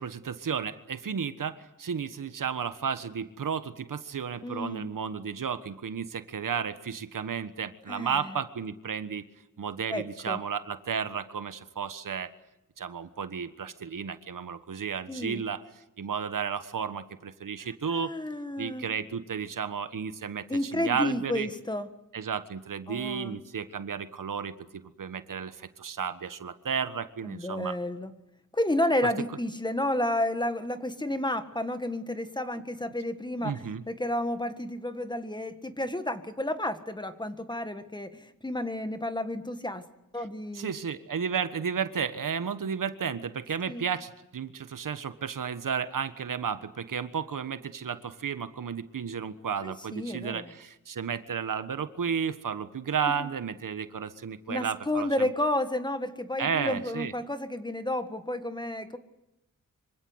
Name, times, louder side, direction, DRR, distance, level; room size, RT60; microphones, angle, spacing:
voice 1, 0.0-9.2 9.6-12.3 12.8-15.6 16.0-18.1 18.6-21.5 22.1-27.8 29.0-29.1 32.6-32.7 33.4-33.8 40.5-55.3 56.4-57.1, right 6 dB, 75° right, 11 dB, 1.5 m, -33 dB
voice 2, 4.4-4.9 7.9-8.3 9.9-10.4 15.1-15.4 17.9-18.9 20.5-21.9 22.9-23.4 27.2-28.1 28.5-39.8 40.1-40.7 43.7-43.8 49.6-50.5 53.2-53.3 54.5-59.0, left 1 dB, 15° left, 9 dB, 1.7 m, -31 dB
25.5 x 25.5 x 8.0 m, 0.88 s
wide cardioid pair, 140°, 32 cm